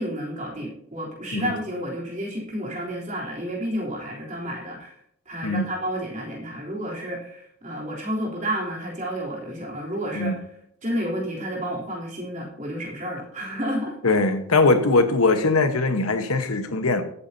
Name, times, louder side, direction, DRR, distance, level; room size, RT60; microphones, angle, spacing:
voice 1, 0.0-4.9 5.3-10.4 10.8-14.0, equal, 35° right, 3.4 m, -30 dB
voice 2, 14.0-17.0, left 3 dB, 90° left, 1.2 m, -21 dB
20.0 x 8.5 x 2.8 m
head